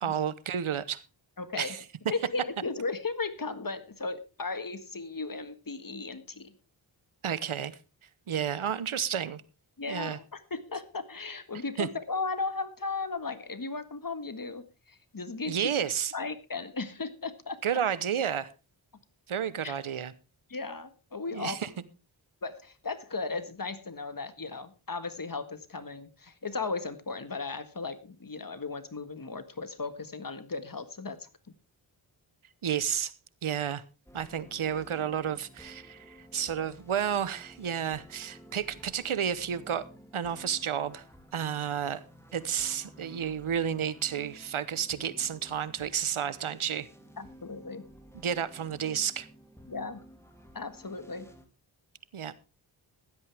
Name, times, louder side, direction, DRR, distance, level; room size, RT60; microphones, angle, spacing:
voice 1, 0.0-1.0 1.6-1.8 7.2-7.8 8.3-9.4 9.9-10.2 11.8-11.9 15.5-16.1 17.6-18.5 19.3-20.1 21.3-21.7 32.6-33.1 33.4-33.8 34.1-39.8 40.1-41.0 41.3-42.0 42.3-46.9 48.1-49.3 52.1-52.3, right 8 dB, 80° right, 1.0 m, -31 dB
voice 2, 1.4-1.8 2.1-6.5 9.8-15.9 16.1-17.8 19.6-19.7 20.5-21.6 22.4-31.3 47.2-47.8 49.7-50.0 50.5-51.3, left 4 dB, 45° left, 1.7 m, -36 dB
sound 1, 34.1-51.5, equal, 5° left, 2.9 m, -53 dB
16.0 x 12.0 x 3.5 m
cardioid pair, 55°, 48 cm